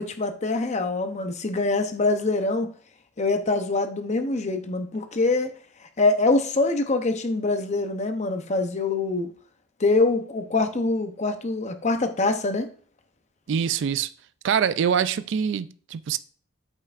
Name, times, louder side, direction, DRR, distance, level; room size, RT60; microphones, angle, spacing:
voice 1, 0.0-2.7 3.2-5.5 6.0-9.3 9.8-12.7, left 3 dB, 35° left, 0.7 m, -24 dB
voice 2, 13.5-14.1 14.4-16.2, right 7 dB, 60° right, 0.3 m, -24 dB
8.1 x 5.6 x 2.5 m
head